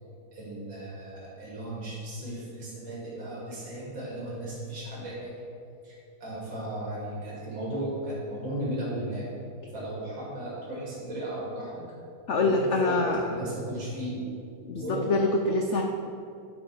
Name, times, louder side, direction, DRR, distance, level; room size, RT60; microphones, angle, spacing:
voice 1, 0.3-5.3 5.8-5.9 6.2-9.3 9.7-11.8 12.4-14.2 14.7-15.1, right 1 dB, 80° right, -7 dB, 3.2 m, -35 dB
voice 2, 12.3-13.2 14.7-15.8, left 2 dB, 75° left, 2 dB, 0.6 m, -25 dB
10.5 x 4.6 x 6.0 m, 2.5 s
omnidirectional pair, 2.0 m